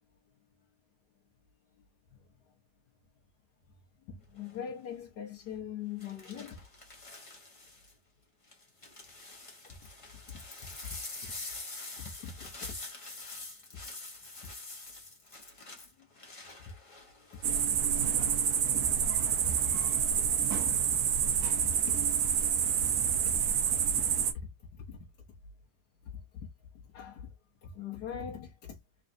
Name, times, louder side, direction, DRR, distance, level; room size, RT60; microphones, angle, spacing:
voice 1, 4.0-6.6 9.7-9.9 10.3-11.4 12.0-12.8 16.0-16.1 17.3-17.4 17.7-18.1 18.8-20.3 20.6-22.0 22.8-23.4 23.7-25.1 26.1-26.5 26.9-27.3 27.6-28.8, left 7 dB, 70° left, 1.4 m, -43 dB
sound 1, 4.4-4.7 6.0-7.9 8.5-17.7 18.1-18.6, left 2 dB, 20° left, 1.0 m, -46 dB
sound 2, 17.4-24.3, right 8 dB, 65° right, 1.1 m, -28 dB
4.0 x 3.2 x 2.6 m
omnidirectional pair, 1.9 m